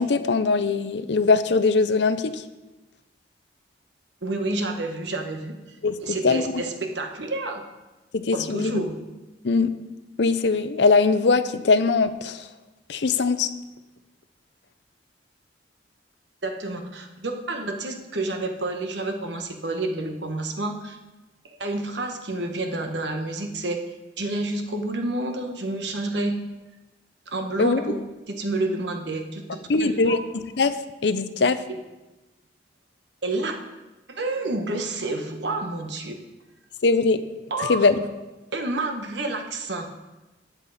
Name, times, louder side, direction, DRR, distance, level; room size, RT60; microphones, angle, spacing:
voice 1, 0.0-2.4 5.8-6.0 6.2-6.5 8.1-8.8 9.4-9.7 10.2-12.4 12.9-13.5 27.6-27.8 29.7-30.2 30.6-30.7 31.0-31.6 36.8-37.2 37.7-38.0, left 4 dB, 65° left, 12 dB, 0.6 m, -21 dB
voice 2, 4.2-5.8 6.0-7.6 8.3-9.0 16.4-21.0 21.5-23.8 24.2-26.4 27.3-28.0 28.3-30.2 31.7-31.8 33.2-33.6 34.1-36.2 37.5-37.8 38.5-39.9, right 2 dB, 70° right, 4 dB, 1.3 m, -29 dB
13.0 x 8.3 x 4.1 m, 1.1 s
head